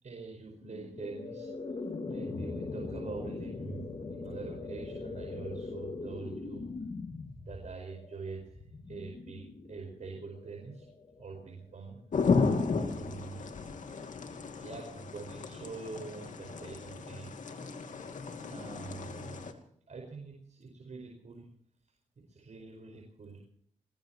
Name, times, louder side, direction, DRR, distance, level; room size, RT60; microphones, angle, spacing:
voice 1, 0.0-1.6 2.1-6.6 7.5-10.9 11.2-12.4 12.7-13.4 14.6-17.3 18.5-19.5 19.9-21.5 21.8-21.9 22.3-23.4, right 4 dB, 65° right, 1 dB, 5.0 m, -45 dB
sound 1, 0.6-11.8, left 3 dB, 55° left, 2.3 m, -41 dB
sound 2, 12.1-19.5, left 4 dB, 75° left, 2.5 m, -33 dB
22.5 x 21.0 x 3.1 m, 0.64 s
cardioid pair, 70°, 13 cm